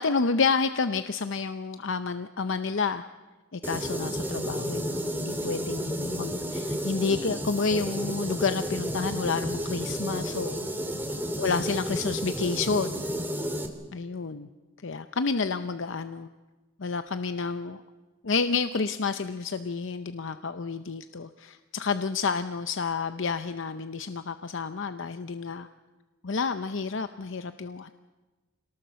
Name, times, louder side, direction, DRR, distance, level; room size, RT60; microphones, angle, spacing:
voice 1, 0.0-3.0 3.5-10.7 11.4-13.0 13.9-14.5 14.8-16.3 16.8-17.8 18.2-25.7 26.2-27.9, left 4 dB, 65° left, 9 dB, 0.7 m, -29 dB
sound 1, 3.6-13.7, equal, 10° right, 2.3 m, -32 dB
26.5 x 18.5 x 6.9 m, 1.2 s
head